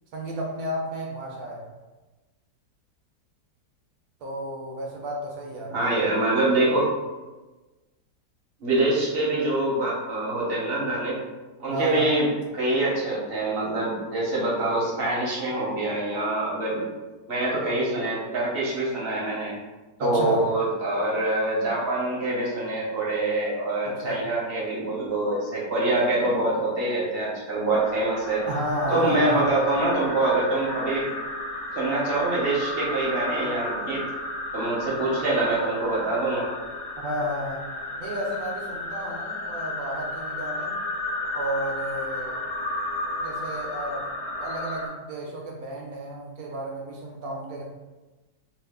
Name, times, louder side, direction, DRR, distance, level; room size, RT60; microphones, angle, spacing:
voice 1, 0.1-1.7 4.2-5.9 11.7-12.1 20.0-20.5 23.8-24.3 28.5-29.5 34.0-34.1 37.0-37.7 38.0-40.8 41.3-42.4 43.2-44.1 44.4-47.6, right 1 dB, 70° right, -1 dB, 0.9 m, -32 dB
voice 2, 5.7-6.9 8.6-11.2 11.6-16.9 17.3-19.5 20.0-28.4 28.9-31.1 31.7-34.0 34.5-36.5, right 2 dB, 50° right, -5 dB, 0.7 m, -25 dB
sound 1, 27.7-44.9, left 2 dB, 60° left, 0.6 m, -33 dB
3.0 x 2.4 x 3.5 m, 1.2 s
omnidirectional pair, 1.8 m